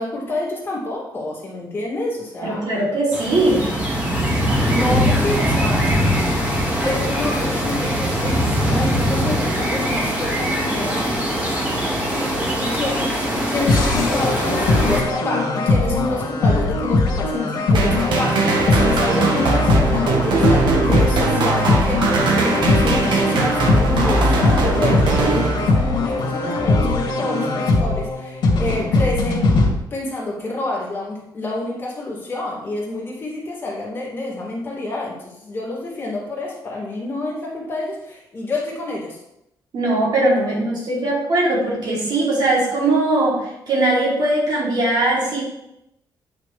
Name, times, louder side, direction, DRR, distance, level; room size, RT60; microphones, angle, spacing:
voice 1, 0.0-2.7 4.7-5.8 6.8-11.0 12.1-29.5 29.9-39.2, left 2 dB, 30° left, -5 dB, 2.5 m, -28 dB
voice 2, 2.4-3.7 39.7-45.4, right 2 dB, 60° right, -4 dB, 3.1 m, -20 dB
sound 1, 3.1-15.0, equal, 20° right, 1.9 m, -21 dB
sound 2, 13.7-29.7, left 3 dB, 75° left, 2.2 m, -20 dB
sound 3, 17.7-26.1, right 3 dB, 80° right, 1.5 m, -20 dB
9.7 x 6.0 x 3.3 m, 0.84 s
wide cardioid pair, 155°, 8 cm